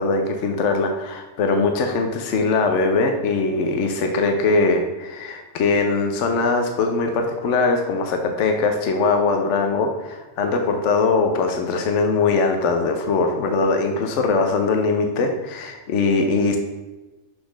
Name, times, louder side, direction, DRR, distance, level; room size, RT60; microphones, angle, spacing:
voice 1, 0.0-16.6, left 3 dB, 70° left, 4 dB, 1.0 m, -21 dB
6.1 x 4.1 x 6.1 m, 1.1 s
omnidirectional pair, 1.3 m